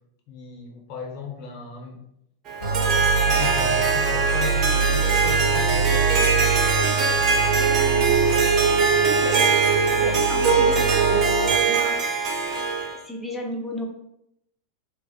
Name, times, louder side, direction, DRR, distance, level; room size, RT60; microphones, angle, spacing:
voice 1, 0.3-2.0 3.2-6.5, left 6 dB, 45° left, 0 dB, 0.8 m, -36 dB
Harp, 2.5-13.0, right 4 dB, 35° right, 0.5 m, -23 dB
sound 1, 2.6-11.6, right 5 dB, 70° left, 1.1 m, -23 dB
voice 2, 7.5-8.1 9.2-9.6 10.0-11.9 12.9-13.9, equal, 5° left, -2 dB, 0.7 m, -34 dB
2.9 x 2.0 x 4.0 m, 0.79 s
figure-of-eight pair, 90°, 0 cm